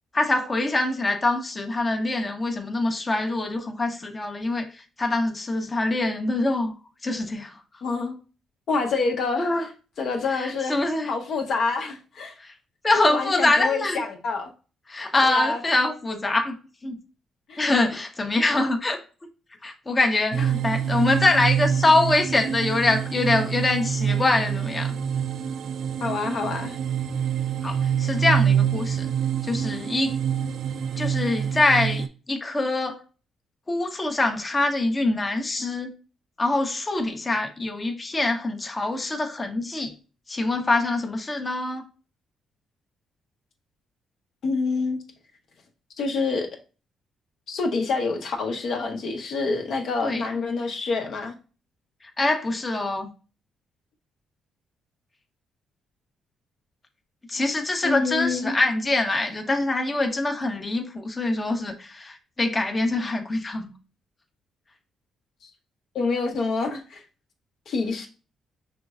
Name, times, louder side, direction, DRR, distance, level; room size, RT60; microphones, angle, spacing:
voice 1, 0.1-4.7 5.0-6.7 7.0-7.5 9.4-9.7 10.3-11.1 12.4-12.5 12.8-14.0 14.9-16.6 16.8-17.0 17.6-19.0 19.6-24.9 27.6-29.1 29.4-30.2 31.0-33.0 33.7-35.9 36.4-39.9 40.3-41.9 50.0-50.2 52.2-53.1 57.3-63.7, left 2 dB, 25° left, 0.6 m, -24 dB
voice 2, 7.8-8.1 8.7-9.5 10.0-10.8 11.1-12.3 12.9-14.5 15.2-15.6 17.5-17.6 18.5-18.6 20.3-20.6 26.0-26.8 44.4-45.0 46.0-46.5 47.5-51.3 57.8-58.6 65.4-65.5 65.9-67.0 67.7-68.1, left 4 dB, 65° left, 0.7 m, -27 dB
sound 1, 20.3-32.1, right 8 dB, 70° right, 0.3 m, -26 dB
5.1 x 3.0 x 2.3 m
cardioid pair, 90°, 0 cm